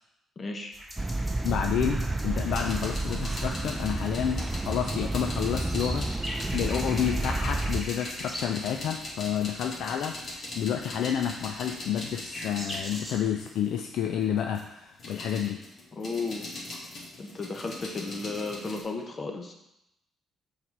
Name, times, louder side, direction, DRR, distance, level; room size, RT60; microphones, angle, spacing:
voice 1, 0.4-0.7 15.9-16.5 17.2-19.5, left 3 dB, 35° left, 3 dB, 1.0 m, -34 dB
sound 1, 0.7-13.2, equal, 5° left, 2.4 m, -43 dB
sound 2, 1.0-7.8, right 2 dB, 20° right, 0.4 m, -30 dB
voice 2, 1.4-15.6, left 9 dB, 80° left, 4 dB, 0.4 m, -30 dB
sound 3, 2.5-13.7 14.2-18.8, left 2 dB, 55° left, 1.9 m, -41 dB
5.8 x 4.1 x 4.6 m, 0.86 s
cardioid pair, 90°, 0 cm